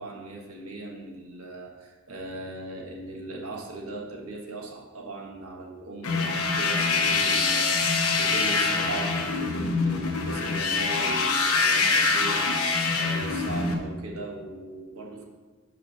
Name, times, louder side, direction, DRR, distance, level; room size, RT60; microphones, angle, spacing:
voice 1, 0.0-15.2, right 2 dB, 90° right, 0 dB, 1.5 m, -38 dB
sound 1, 6.0-13.8, left 4 dB, 90° left, 1.0 m, -24 dB
5.7 x 5.4 x 6.4 m, 1.3 s
head